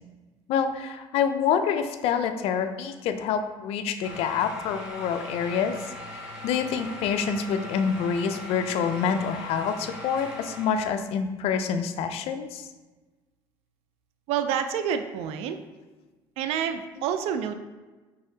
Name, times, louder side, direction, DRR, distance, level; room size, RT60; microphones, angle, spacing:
voice 1, 0.5-12.7, left 7 dB, 70° left, 8 dB, 0.4 m, -27 dB
sound 1, 4.0-11.0, left 1 dB, 5° right, 1.4 m, -40 dB
voice 2, 14.3-15.6 16.4-17.5, right 8 dB, 75° right, 9 dB, 0.4 m, -28 dB
5.5 x 3.5 x 2.7 m, 1.2 s
cardioid pair, 100°, 11 cm